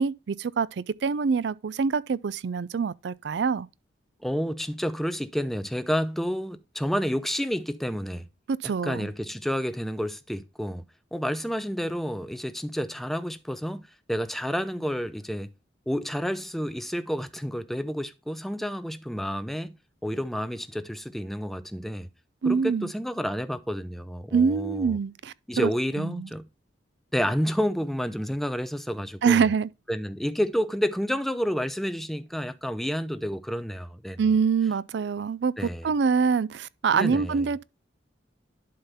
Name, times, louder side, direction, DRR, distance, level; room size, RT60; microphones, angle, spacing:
voice 1, 0.0-3.7 8.5-9.1 22.4-22.9 24.3-25.7 26.0-26.3 29.2-29.7 34.2-37.6, right 5 dB, 65° right, 0.4 m, -25 dB
voice 2, 4.2-8.3 8.6-10.8 11.1-15.5 15.9-19.8 20.0-22.1 22.4-25.0 25.5-26.5 27.1-29.4 29.9-34.2 35.6-35.9 36.9-37.5, equal, ahead, 0.5 m, -30 dB
11.0 x 3.8 x 4.1 m
head